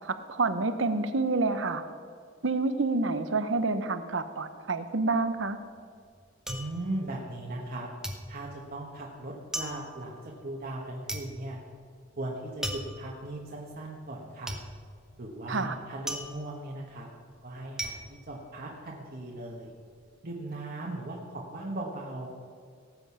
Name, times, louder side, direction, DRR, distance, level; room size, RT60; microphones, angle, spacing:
voice 1, 0.0-1.8 2.4-5.6 15.5-15.8, right 3 dB, 70° right, 10 dB, 0.9 m, -28 dB
sound 1, 5.4-7.7 8.0-19.2 19.5-20.1, right 1 dB, 5° right, 1.0 m, -39 dB
voice 2, 6.5-7.9 8.3-11.6 12.2-14.5 15.2-17.1 17.4-19.7 20.2-22.3, right 1 dB, 50° right, -3 dB, 1.4 m, -38 dB
18.0 x 7.9 x 5.7 m, 2.2 s
head